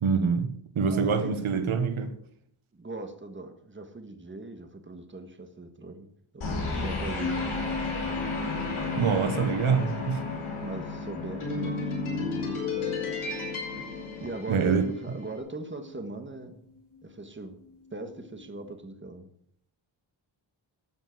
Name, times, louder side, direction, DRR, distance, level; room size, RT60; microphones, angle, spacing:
voice 1, 0.0-2.1 9.0-10.2 14.5-14.9, right 5 dB, 90° right, 1.3 m, -25 dB
voice 2, 0.9-1.4 2.7-6.1 6.3-6.5 6.8-7.8 10.4-12.9 14.2-16.6 17.0-17.6 17.9-19.3, right 2 dB, 25° right, 1.6 m, -40 dB
sound 1, 6.4-15.0, left 3 dB, 90° left, 4.8 m, -33 dB
sound 2, 7.1-18.6, left 3 dB, 40° left, 5.1 m, -40 dB
13.0 x 7.8 x 6.2 m
wide cardioid pair, 105°, 48 cm